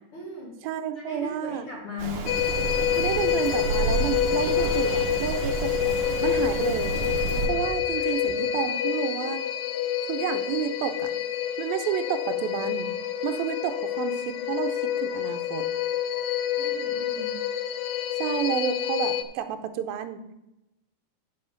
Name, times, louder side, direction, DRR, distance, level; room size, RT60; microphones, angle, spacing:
voice 1, 0.1-0.5 1.1-2.3 16.6-17.4, left 4 dB, 45° left, -4 dB, 2.3 m, -37 dB
voice 2, 0.6-1.7 3.0-7.0 7.5-9.4 10.1-11.1 11.6-12.9 13.2-15.7 18.1-20.2, right 9 dB, 80° right, 8 dB, 2.4 m, -30 dB
Rain, 2.0-7.5, right 3 dB, 65° right, 2.3 m, -30 dB
sound 1, 2.3-19.2, left 10 dB, 80° left, 2.0 m, -28 dB
sound 2, 2.6-8.3, right 4 dB, 50° right, 3.4 m, -47 dB
7.7 x 5.8 x 7.1 m, 0.92 s
omnidirectional pair, 4.4 m